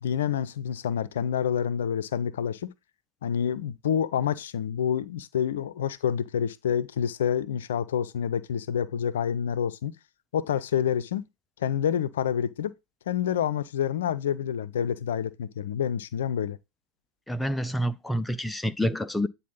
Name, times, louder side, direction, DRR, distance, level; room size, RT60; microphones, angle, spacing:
voice 1, 0.0-2.7 3.2-9.9 10.3-11.2 11.6-12.7 13.1-16.6, left 8 dB, 65° left, 0.5 m, -28 dB
voice 2, 17.3-19.3, equal, 5° left, 0.5 m, -28 dB
9.4 x 4.1 x 3.9 m
figure-of-eight pair, 85°, 0 cm